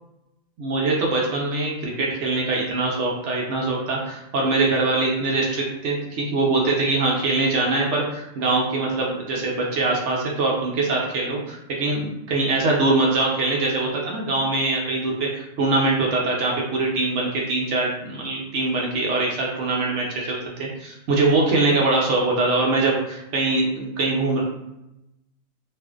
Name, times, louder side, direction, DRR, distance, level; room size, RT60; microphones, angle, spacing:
voice 1, 0.6-24.4, right 3 dB, 65° right, -2 dB, 0.9 m, -23 dB
2.5 x 2.4 x 2.3 m, 0.88 s
omnidirectional pair, 1.4 m